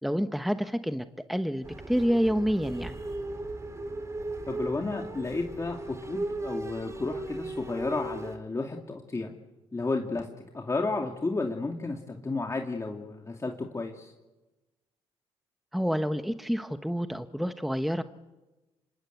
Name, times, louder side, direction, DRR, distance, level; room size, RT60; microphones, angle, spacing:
voice 1, 0.0-2.9 15.7-18.0, equal, ahead, 9 dB, 1.1 m, -28 dB
sound 1, 1.6-8.4, right 2 dB, 25° right, 4.5 m, -37 dB
voice 2, 4.5-9.3 9.7-10.3 10.5-14.1, left 3 dB, 25° left, 2 dB, 2.6 m, -32 dB
26.0 x 21.5 x 8.2 m, 1.1 s
supercardioid pair, 65°, 12 cm